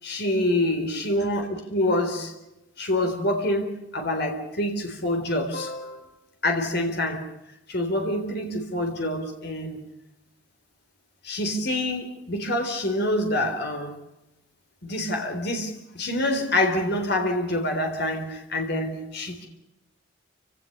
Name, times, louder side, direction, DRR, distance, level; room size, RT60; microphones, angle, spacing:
voice 1, 0.0-2.3 2.8-6.1 6.4-7.3 7.7-9.8 11.2-13.9 14.8-19.5, left 1 dB, 55° left, 3.8 m, -26 dB
29.0 x 17.5 x 6.7 m
head